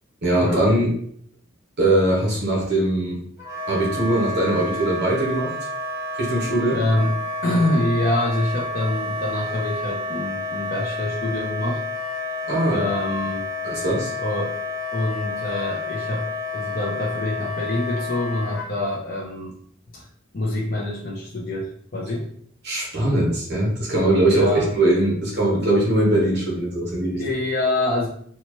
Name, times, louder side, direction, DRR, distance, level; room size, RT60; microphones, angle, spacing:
voice 1, 0.2-0.9 1.8-3.2 3.7-5.5 6.2-6.8 12.5-12.8 13.6-14.1 22.6-27.2, right 1 dB, 55° right, -3 dB, 1.2 m, -21 dB
Wind instrument woodwind instrument, 3.4-18.7, left 2 dB, 15° right, 1.1 m, -30 dB
voice 2, 6.7-7.1 7.4-11.8 12.7-13.5 14.2-14.6 14.9-19.5 19.9-20.0 20.3-22.3 24.3-24.7 27.2-28.1, left 1 dB, 50° left, -4 dB, 0.7 m, -25 dB
4.2 x 2.4 x 3.0 m, 0.62 s
head